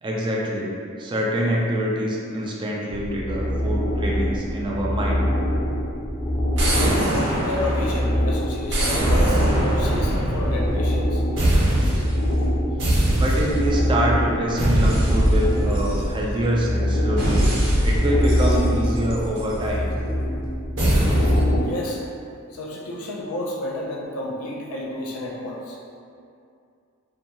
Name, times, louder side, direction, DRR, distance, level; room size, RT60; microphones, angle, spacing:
voice 1, 0.0-0.7 1.0-5.2 13.1-17.4 17.8-19.9, right 1 dB, 20° right, -3 dB, 0.3 m, -25 dB
sound 1, 2.9-21.6, equal, 25° left, 0.6 m, -25 dB
sound 2, 6.6-8.2 8.7-11.0 11.4-12.2 12.8-13.8 14.6-16.4 17.2-19.6 20.8-21.5, right 1 dB, 60° right, 0.7 m, -22 dB
voice 2, 7.0-11.2 21.0-21.1 21.6-22.0 22.5-25.8, left 1 dB, 85° left, -2 dB, 0.5 m, -31 dB
2.5 x 2.2 x 2.8 m, 2.4 s
head